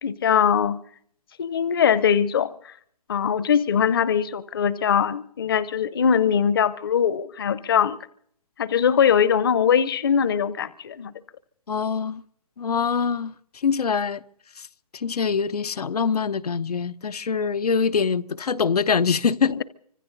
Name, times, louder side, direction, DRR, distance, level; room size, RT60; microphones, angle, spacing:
voice 1, 0.0-0.8 1.4-2.5 3.1-8.0 8.6-11.1 19.5-19.6, left 7 dB, 40° left, 0.7 m, -21 dB
voice 2, 11.7-12.2 12.6-13.3 13.6-14.2 14.9-19.6, left 6 dB, 90° left, 0.9 m, -24 dB
25.5 x 25.5 x 4.0 m
hypercardioid pair, 175°, 19 cm